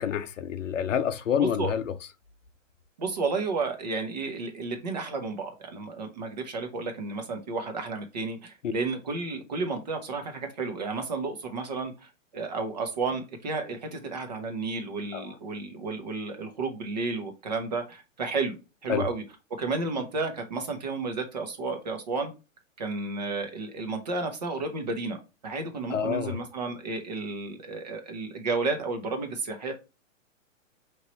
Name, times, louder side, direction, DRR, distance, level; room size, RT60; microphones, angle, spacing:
voice 1, 0.0-1.9 8.6-8.7 15.1-15.3 18.9-19.0 25.9-26.4, left 8 dB, 65° left, 0.7 m, -28 dB
voice 2, 1.4-1.7 3.0-18.6 18.8-19.2 19.5-22.3 22.8-25.2 25.4-29.7, right 3 dB, 30° right, 0.8 m, -32 dB
5.5 x 3.1 x 2.9 m
hypercardioid pair, 175°, 41 cm